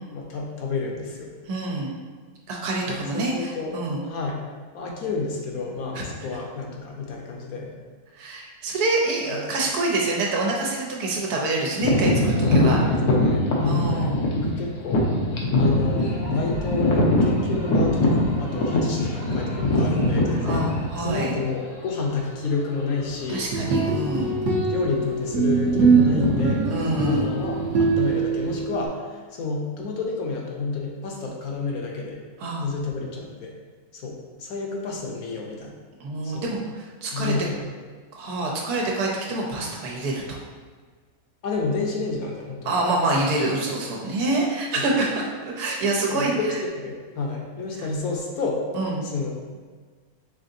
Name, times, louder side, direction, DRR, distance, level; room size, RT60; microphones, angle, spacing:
voice 1, 0.1-1.3 2.9-3.7 4.0-4.4 4.7-7.7 9.3-9.4 12.6-12.7 13.1-14.2 14.4-15.1 15.5-20.7 21.0-23.5 24.7-26.7 27.0-32.2 32.6-33.5 33.9-35.8 36.2-36.6 37.1-37.7 41.4-42.8 43.1-43.3 44.7-44.8 46.1-46.5 46.7-48.6 49.0-49.3, left 4 dB, 70° left, 0 dB, 1.2 m, -30 dB
voice 2, 1.5-1.9 2.5-4.0 5.9-6.0 8.1-12.8 13.6-14.1 20.4-21.3 23.3-24.3 26.7-27.3 32.4-32.7 36.0-37.3 38.1-40.4 42.6-46.4 48.7-49.0, right 2 dB, 85° right, -1 dB, 1.4 m, -26 dB
sound 1, 11.8-21.6 22.2-22.3 23.0-23.2 23.5-23.7 24.4-24.9 25.2-28.6, left 1 dB, 85° left, 1.3 m, -23 dB
sound 2, 15.8-21.1, left 1 dB, 40° left, 0.6 m, -41 dB
sound 3, 23.3-28.9, right 4 dB, 60° right, 1.0 m, -23 dB
5.0 x 3.8 x 2.6 m, 1.5 s
omnidirectional pair, 1.6 m